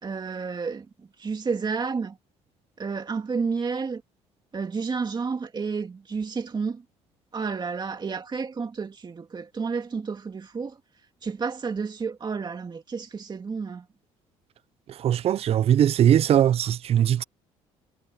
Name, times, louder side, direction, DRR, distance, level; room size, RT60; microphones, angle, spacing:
voice 1, 0.0-0.9 1.2-2.2 2.8-4.0 4.5-6.8 7.3-10.8 11.2-13.9, right 5 dB, 35° right, 2.4 m, -30 dB
voice 2, 15.0-17.2, right 10 dB, 50° right, 0.5 m, -20 dB
supercardioid pair, 75°, 13 cm